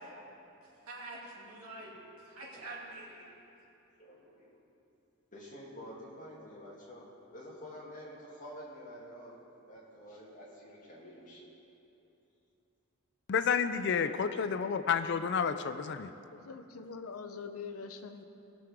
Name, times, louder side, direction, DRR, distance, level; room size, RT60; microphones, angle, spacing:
voice 1, 0.0-0.3 2.5-2.7 4.0-4.5 5.3-11.5 14.0-14.3, equal, 35° left, -4 dB, 2.1 m, -49 dB
voice 2, 0.8-1.9 2.2-3.3, right 2 dB, 90° right, -5 dB, 2.6 m, -46 dB
voice 3, 13.3-15.6 15.9-16.1, left 6 dB, 55° left, 11 dB, 0.4 m, -30 dB
voice 4, 16.3-18.2, left 5 dB, 85° left, 8 dB, 0.7 m, -44 dB
19.5 x 6.7 x 3.6 m, 2.8 s
head